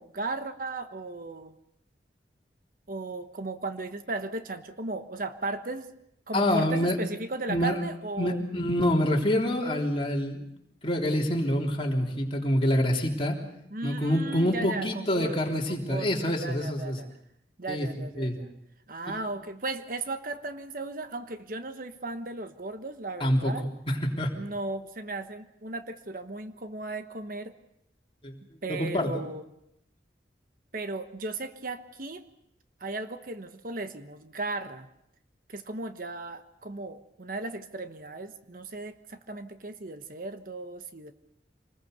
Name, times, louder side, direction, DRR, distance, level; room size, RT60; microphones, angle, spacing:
voice 1, 0.0-1.5 2.9-5.9 6.3-8.4 13.7-17.1 17.6-18.5 18.9-23.7 24.3-27.5 28.6-29.4 30.7-32.2 32.8-34.9 35.5-41.1, right 3 dB, 50° right, 9 dB, 1.2 m, -36 dB
voice 2, 6.3-7.0 7.5-7.8 8.2-10.5 10.8-13.4 13.8-17.0 17.7-18.4 19.1-19.2 23.2-23.5 23.9-24.3 28.2-28.4 28.7-29.2, equal, 30° left, 0 dB, 3.5 m, -26 dB
26.5 x 20.5 x 6.8 m, 0.80 s
head